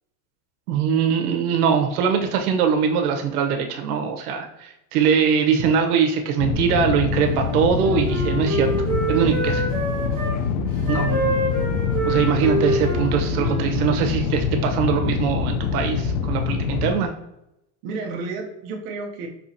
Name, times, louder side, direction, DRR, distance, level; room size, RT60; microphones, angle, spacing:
voice 1, 0.7-8.7 9.1-9.7 10.9-11.0 12.0-17.1, right 7 dB, 85° right, 4 dB, 1.0 m, -22 dB
sound 1, 6.4-16.9, left 6 dB, 75° left, 0.7 m, -25 dB
Wind instrument woodwind instrument, 7.2-10.4 10.8-14.0, right 2 dB, 20° right, 1.5 m, -27 dB
voice 2, 10.7-11.5 12.1-12.6 17.8-19.3, right 3 dB, 35° right, 0 dB, 0.7 m, -31 dB
5.9 x 2.9 x 2.7 m, 0.85 s
supercardioid pair, 175°, 44 cm